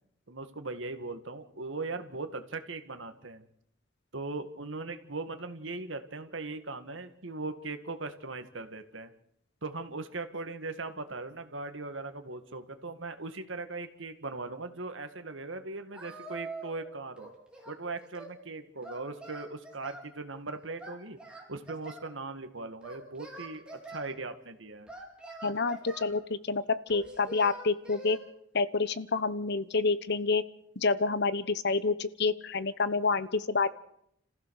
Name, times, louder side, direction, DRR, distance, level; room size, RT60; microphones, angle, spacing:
voice 1, 0.3-3.5 4.1-9.1 9.6-17.3 17.7-21.2 21.5-23.6 23.9-24.9, right 3 dB, 70° right, 8 dB, 2.0 m, -39 dB
Singing, 15.9-16.9 17.2-18.4 18.8-20.1 20.8-22.1 22.8-24.0 24.9-26.2 26.9-28.2, right 2 dB, 5° right, 4.9 m, -45 dB
voice 2, 25.4-28.2 28.5-30.4 30.8-33.7, left 4 dB, 60° left, 15 dB, 1.1 m, -28 dB
30.0 x 15.0 x 6.5 m, 0.73 s
head